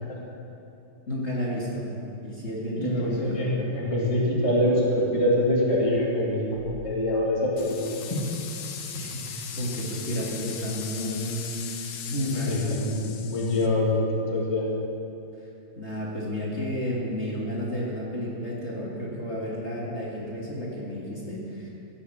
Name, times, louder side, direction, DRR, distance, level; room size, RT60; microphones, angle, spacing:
voice 1, 1.1-1.9 2.2-3.4 8.9-11.4 12.1-12.8 15.8-21.7, left 1 dB, 30° left, -5 dB, 2.2 m, -31 dB
voice 2, 2.8-7.8 8.1-8.2 12.5-14.7, left 1 dB, 15° left, -5 dB, 1.9 m, -25 dB
sound 1, 7.6-13.7, left 7 dB, 75° left, 1.7 m, -39 dB
16.5 x 7.1 x 7.1 m, 2.8 s
omnidirectional pair, 2.4 m